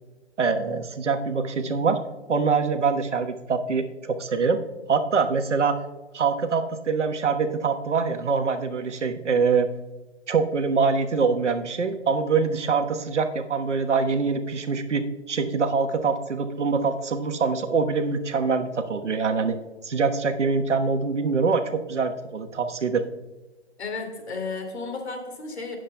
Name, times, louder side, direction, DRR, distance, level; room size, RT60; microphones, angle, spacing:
voice 1, 0.4-2.0 2.3-4.6 4.9-5.8 6.1-9.7 10.3-19.6 19.8-23.1, right 5 dB, 85° right, 7 dB, 1.2 m, -24 dB
voice 2, 23.8-25.8, left 3 dB, 65° left, 4 dB, 2.6 m, -33 dB
17.5 x 7.6 x 2.2 m, 1.2 s
hypercardioid pair, 155°, 35 cm